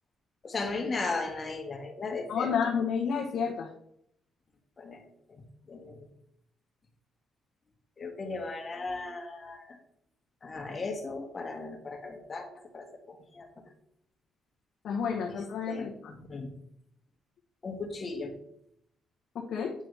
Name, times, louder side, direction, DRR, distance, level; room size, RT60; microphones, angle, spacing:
voice 1, 0.4-2.5 4.8-5.0 5.3-5.4 5.7-6.1 8.0-9.8 10.4-12.5 12.7-13.5 15.7-16.5 17.6-18.3, left 3 dB, 40° left, 3 dB, 1.8 m, -36 dB
voice 2, 2.3-3.7 14.8-16.1 19.3-19.7, left 6 dB, 70° left, -3 dB, 1.3 m, -30 dB
9.0 x 6.0 x 3.5 m, 0.74 s
cardioid pair, 90°, 0 cm